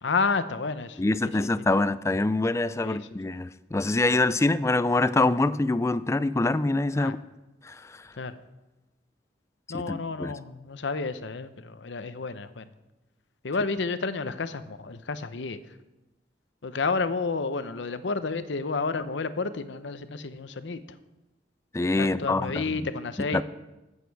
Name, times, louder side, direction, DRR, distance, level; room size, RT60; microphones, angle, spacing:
voice 1, 0.0-1.3 2.8-3.0 6.9-7.2 8.2-8.4 9.7-12.7 13.4-15.6 16.6-21.0 22.0-23.4, left 4 dB, 75° left, 12 dB, 0.7 m, -30 dB
voice 2, 1.0-7.2 7.6-8.0 9.7-10.3 21.7-22.9 23.3-23.4, left 2 dB, 15° left, 15 dB, 0.3 m, -25 dB
14.0 x 8.4 x 4.7 m, 1.0 s
head